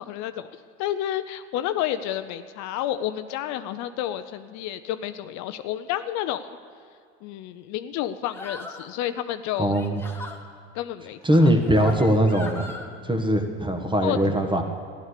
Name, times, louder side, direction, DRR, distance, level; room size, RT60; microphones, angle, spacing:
voice 1, 0.0-6.5 7.2-9.7 10.7-11.5 14.0-14.2, left 12 dB, 60° left, 11 dB, 0.6 m, -30 dB
sound 1, 8.3-8.9 9.6-10.4 11.3-12.9, left 2 dB, 5° left, 1.6 m, -39 dB
voice 2, 9.6-10.0 11.2-12.7 13.1-14.6, equal, 15° right, 5 dB, 1.6 m, -21 dB
13.5 x 11.5 x 6.6 m, 2.2 s
hypercardioid pair, 90°, 33 cm